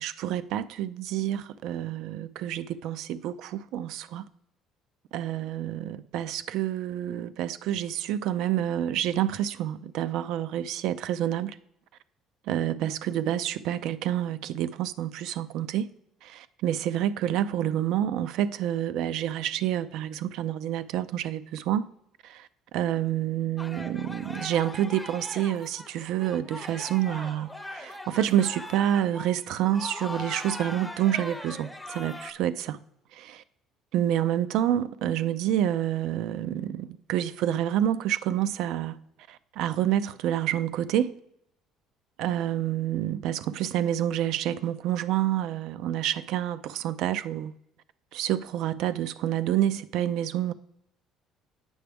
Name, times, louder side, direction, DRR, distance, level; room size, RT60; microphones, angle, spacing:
voice 1, 0.0-4.3 5.1-11.6 12.5-15.9 16.2-21.9 22.2-22.5 22.7-32.8 33.1-33.4 33.9-39.0 39.3-41.1 42.2-47.5 48.1-50.5, right 11 dB, 75° right, 0.3 m, -28 dB
sound 1, 23.6-32.3, left 1 dB, 5° left, 0.6 m, -40 dB
7.8 x 5.9 x 3.4 m
cardioid pair, 115°, 0 cm